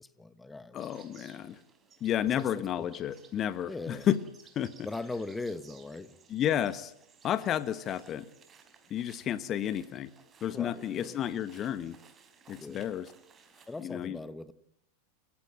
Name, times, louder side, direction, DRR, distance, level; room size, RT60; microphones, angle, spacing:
voice 1, 0.0-1.3 2.4-2.9 3.7-4.1 4.8-6.1 10.5-11.2 12.6-12.9 13.7-14.5, left 3 dB, 10° left, 1.2 m, -40 dB
voice 2, 0.7-1.6 2.0-4.2 4.5-4.9 6.3-6.9 7.2-8.3 8.9-10.1 10.4-12.0 12.5-13.1 13.8-14.2, left 10 dB, 30° left, 1.1 m, -31 dB
sound 1, 0.8-13.8, right 6 dB, 20° right, 4.1 m, -59 dB
29.5 x 16.0 x 7.6 m
figure-of-eight pair, 90°, 0 cm